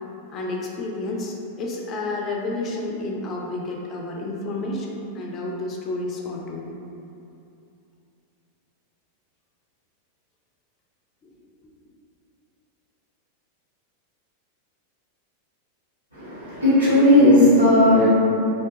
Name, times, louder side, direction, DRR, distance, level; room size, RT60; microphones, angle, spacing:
voice 1, 0.3-6.7, left 2 dB, 30° left, -2 dB, 0.4 m, -30 dB
voice 2, 16.1-18.1, left 1 dB, 90° right, -14 dB, 1.2 m, -15 dB
2.5 x 2.2 x 2.7 m, 2.7 s
figure-of-eight pair, 90°, 0 cm